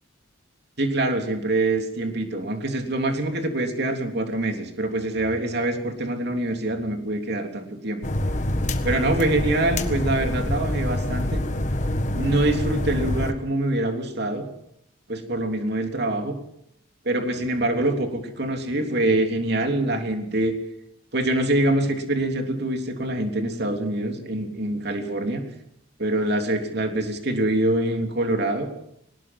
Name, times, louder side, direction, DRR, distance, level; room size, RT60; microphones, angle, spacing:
voice 1, 0.8-8.0 8.8-11.4 12.1-14.5 15.1-16.4 17.1-20.5 21.1-25.4 26.0-28.7, right 1 dB, 55° right, 4 dB, 3.4 m, -25 dB
sound 1, 8.0-13.3, left 1 dB, 35° left, 1.5 m, -26 dB
21.5 x 20.0 x 6.2 m, 0.74 s
head